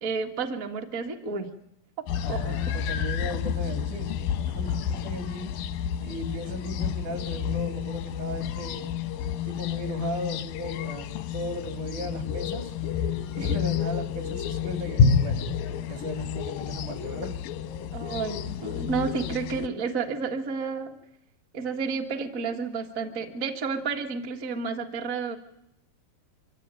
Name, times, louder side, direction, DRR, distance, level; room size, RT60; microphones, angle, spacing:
voice 1, 0.0-1.5 2.3-2.6 13.5-13.6 17.9-21.0 21.5-25.3, right 5 dB, 40° right, 3 dB, 1.1 m, -31 dB
sound 1, 2.1-19.7, left 7 dB, 90° left, 2.7 m, -29 dB
voice 2, 2.2-5.5 6.0-8.9 9.5-11.1 11.3-12.7 13.4-15.4 15.9-17.4, equal, 60° right, 6 dB, 4.0 m, -36 dB
24.5 x 15.0 x 8.9 m, 0.85 s
omnidirectional pair, 4.0 m